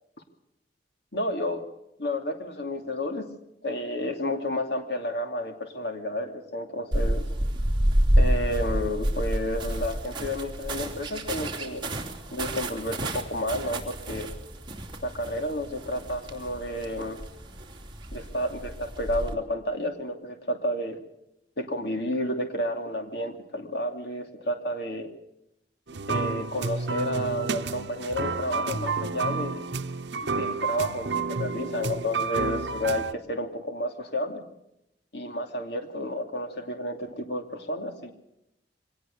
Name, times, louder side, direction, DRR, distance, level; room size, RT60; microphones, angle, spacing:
voice 1, 1.1-1.6 2.0-3.3 3.6-7.3 8.2-11.8 12.3-14.3 15.0-17.2 18.1-21.0 21.6-25.1 26.1-29.6 30.2-33.0 33.3-34.4 35.1-38.1, left 1 dB, 65° left, 5 dB, 2.7 m, -31 dB
sound 1, 6.9-19.3, right 1 dB, 25° right, 3.0 m, -29 dB
sound 2, 25.9-33.1, right 4 dB, 80° right, 0.9 m, -30 dB
24.0 x 18.5 x 6.6 m, 0.83 s
head